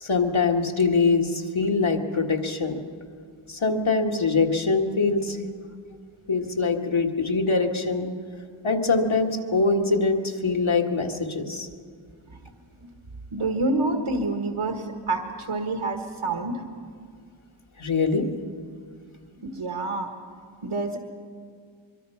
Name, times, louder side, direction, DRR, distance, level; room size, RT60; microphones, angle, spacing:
voice 1, 0.0-2.8 3.5-5.5 6.3-8.1 8.6-11.7 17.8-18.3, left 4 dB, 70° left, 2 dB, 1.9 m, -23 dB
voice 2, 13.3-16.6 19.4-20.1 20.6-21.0, right 2 dB, 80° right, 5 dB, 1.7 m, -27 dB
24.0 x 23.5 x 5.8 m, 2.1 s
wide cardioid pair, 50°, 49 cm